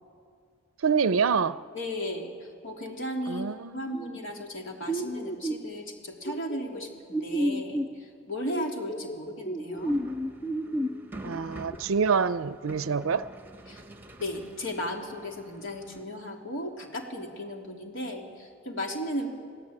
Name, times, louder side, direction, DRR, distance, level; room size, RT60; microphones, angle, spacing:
voice 1, 0.8-1.6 3.3-3.8 11.2-13.3, right 6 dB, 70° right, 0.5 m, -26 dB
voice 2, 1.7-3.5 3.7-10.0 13.7-13.8 14.2-19.3, equal, 65° left, 3.1 m, -35 dB
sound 1, 3.9-4.4 4.9-5.6 6.2-7.9 8.5-10.9 11.2-11.8, right 1 dB, 20° left, 0.8 m, -31 dB
sound 2, 9.8-16.0, right 1 dB, 10° right, 1.2 m, -47 dB
27.0 x 17.0 x 8.7 m
head